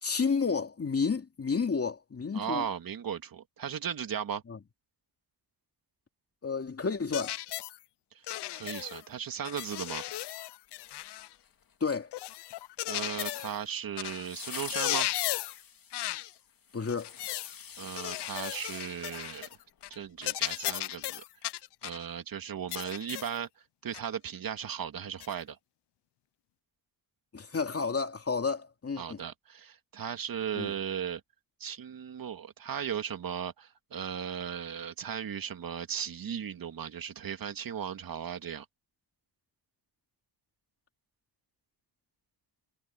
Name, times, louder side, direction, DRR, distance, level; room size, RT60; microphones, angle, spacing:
voice 1, 0.0-2.7 4.5-4.6 6.4-7.3 11.8-12.1 16.7-17.1 27.3-29.2 30.5-30.7, left 5 dB, 35° left, 2.8 m, -31 dB
voice 2, 2.3-4.4 8.1-8.2 8.5-10.0 12.9-15.1 17.8-19.5 19.9-21.2 21.8-23.5 23.8-25.6 29.0-31.2 31.6-38.7, right 8 dB, 55° right, 2.3 m, -36 dB
sound 1, 7.1-7.8 8.3-9.0 9.4-11.3 12.1-13.6 14.0-14.3 14.6-15.6 15.9-16.3 16.9-17.6 18.0-19.6 19.8-20.0 20.2-22.0 22.7-23.4 23.9-24.1 25.2-25.3, left 15 dB, 80° left, 0.6 m, -36 dB
sound 2, 10.8-11.7 14.2-20.1 20.4-20.5, left 7 dB, 55° left, 2.9 m, -46 dB
cardioid pair, 100°, 40 cm